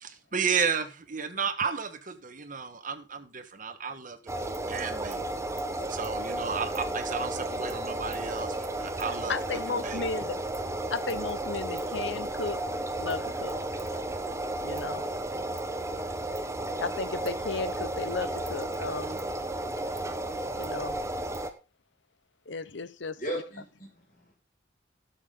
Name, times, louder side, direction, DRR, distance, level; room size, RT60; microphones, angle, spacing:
voice 1, 0.0-5.2 5.9-9.3 9.7-10.0, right 6 dB, 45° right, 1.5 m, -33 dB
sound 1, 4.3-21.5, right 1 dB, 15° right, 1.2 m, -33 dB
voice 2, 9.3-10.4 10.9-12.6 13.0-13.5 14.6-15.0 16.8-19.2 20.5-21.0 22.5-23.2, left 4 dB, 70° left, 0.8 m, -34 dB
voice 3, 23.2-24.4, equal, 45° left, 6.8 m, -37 dB
15.5 x 7.3 x 3.8 m
head